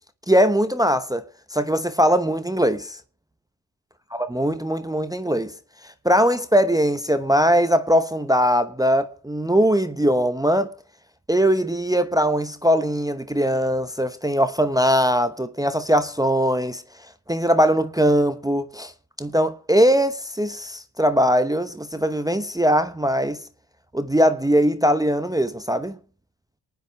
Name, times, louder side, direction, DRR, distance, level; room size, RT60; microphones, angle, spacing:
voice 1, 0.3-1.2 1.5-3.0 4.1-5.5 6.0-10.7 11.3-16.8 17.3-18.9 19.2-23.4 23.9-26.0, equal, 10° right, 0.8 m, -20 dB
23.5 x 9.4 x 3.4 m
supercardioid pair, 55°, 48 cm